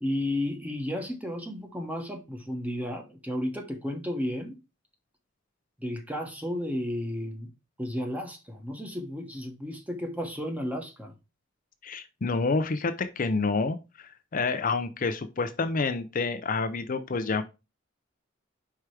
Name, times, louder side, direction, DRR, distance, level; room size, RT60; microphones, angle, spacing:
voice 1, 0.0-4.6 5.8-7.5 7.8-11.1, left 1 dB, 10° right, 1.2 m, -33 dB
voice 2, 11.8-17.4, left 4 dB, 45° left, 0.5 m, -28 dB
4.8 x 4.5 x 4.7 m
head